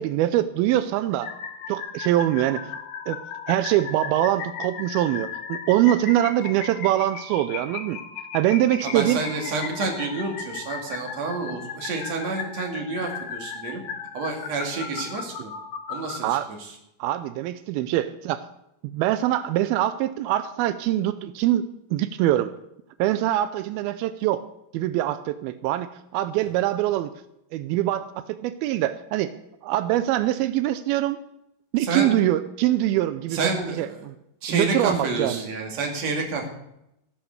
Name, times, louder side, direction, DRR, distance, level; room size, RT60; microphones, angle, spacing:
voice 1, 0.0-1.3 1.7-2.8 3.1-3.2 3.5-8.0 8.3-9.2 16.2-16.5 17.0-18.5 18.8-22.5 23.0-24.4 24.7-27.1 27.5-29.3 29.6-31.2 31.7-33.5 33.8-34.2 34.5-35.5, right 13 dB, 85° right, 12 dB, 2.1 m, -24 dB
sound 1, 1.2-16.2, left 6 dB, 65° left, 1.7 m, -36 dB
voice 2, 8.8-13.8 14.1-15.5 15.9-16.7 31.8-32.2 33.3-34.0 34.4-36.5, right 3 dB, 45° right, 2 dB, 2.9 m, -29 dB
16.0 x 7.2 x 6.5 m, 0.82 s
omnidirectional pair, 4.9 m